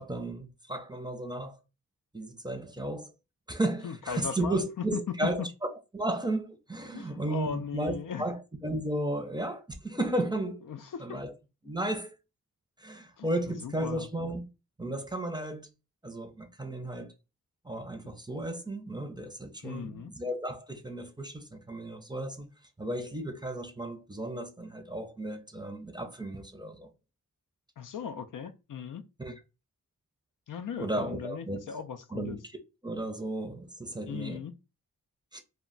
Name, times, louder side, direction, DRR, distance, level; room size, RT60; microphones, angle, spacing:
voice 1, 0.0-1.6 2.1-3.1 3.5-5.5 5.9-10.6 11.0-11.3 11.6-12.2 12.8-14.4 14.8-15.7 16.0-17.1 17.6-22.5 22.8-26.9 29.2-29.3 30.8-31.6 32.1-32.4 32.8-34.4 35.3-35.4, right 1 dB, 10° right, 0.6 m, -34 dB
voice 2, 3.8-5.3 6.9-8.3 10.7-11.2 13.2-14.1 19.6-20.1 27.8-29.0 30.5-32.4 34.1-34.5, left 7 dB, 60° left, 0.5 m, -38 dB
2.2 x 2.1 x 3.7 m
cardioid pair, 50°, 36 cm